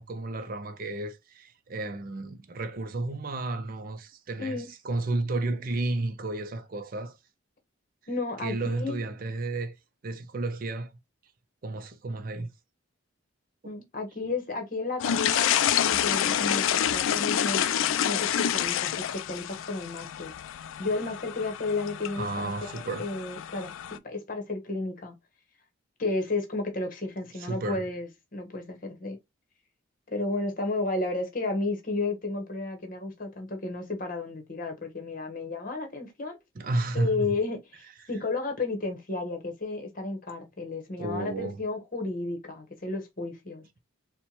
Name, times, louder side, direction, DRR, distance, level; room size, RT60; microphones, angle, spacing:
voice 1, 0.0-7.2 8.4-9.7 10.0-10.9 11.6-12.5 13.6-13.8 17.1-17.2 22.2-23.1 27.4-27.9 36.6-37.3 41.0-41.6, right 2 dB, 45° right, 0.5 m, -32 dB
voice 2, 8.1-9.0 13.6-15.5 15.8-17.6 18.0-20.3 20.8-25.1 26.0-29.2 30.1-36.4 36.9-43.6, left 3 dB, 40° left, 1.0 m, -32 dB
sound 1, 15.0-24.0, left 10 dB, 75° left, 0.3 m, -28 dB
4.3 x 2.2 x 2.9 m
head